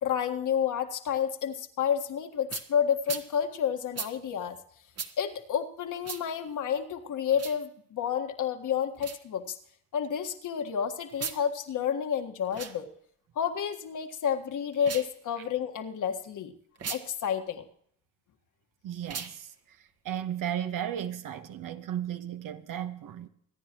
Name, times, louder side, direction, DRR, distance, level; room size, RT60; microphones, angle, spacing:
voice 1, 0.0-4.6 5.2-9.6 9.9-12.9 13.4-16.5 16.9-17.6, left 8 dB, 50° left, 1.8 m, -30 dB
sound 1, 2.5-2.7 3.1-3.3 3.9-4.1 5.0-5.1 6.0-6.2 7.3-7.6 9.0-9.2 11.1-11.4 12.5-12.8 14.7-15.1 16.8-17.0 19.0-19.4, right 6 dB, 40° right, 1.6 m, -37 dB
voice 2, 18.8-19.5 20.0-23.3, right 10 dB, 55° right, 1.3 m, -34 dB
25.5 x 10.0 x 3.0 m
supercardioid pair, 70°, 38 cm